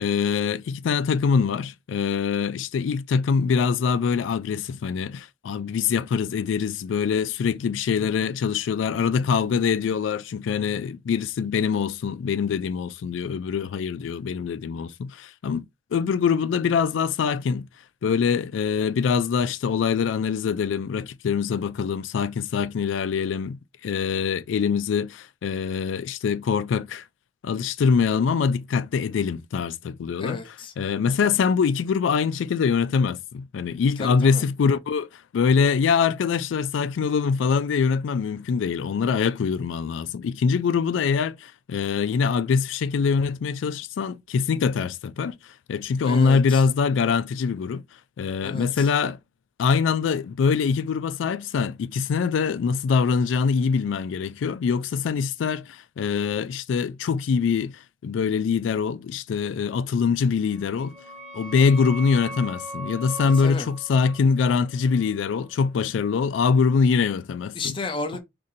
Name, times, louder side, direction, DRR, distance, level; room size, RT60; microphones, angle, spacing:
voice 1, 0.0-15.6 15.9-17.7 18.0-27.0 27.4-30.4 30.8-47.8 48.2-49.2 49.6-60.9 61.3-67.8, left 6 dB, 85° left, 0.3 m, -24 dB
voice 2, 30.2-30.7 34.0-34.4 46.0-46.6 48.4-48.9 63.2-63.7 67.5-68.2, left 3 dB, 25° left, 0.5 m, -33 dB
sound 1, 60.5-65.9, equal, 35° right, 0.8 m, -40 dB
2.6 x 2.6 x 4.0 m
head